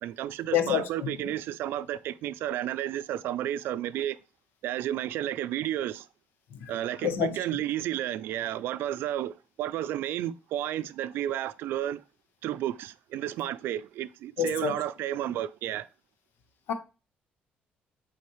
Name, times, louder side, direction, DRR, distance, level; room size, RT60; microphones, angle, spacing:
voice 1, 0.0-4.2 4.6-6.0 6.7-9.3 9.6-12.0 12.4-15.9, right 12 dB, 75° right, 0.4 m, -32 dB
voice 2, 0.5-1.1 7.0-7.4 14.4-14.8 16.7-16.8, left 8 dB, 70° left, 1.1 m, -27 dB
8.5 x 4.2 x 3.1 m
cardioid pair, 165°, 4 cm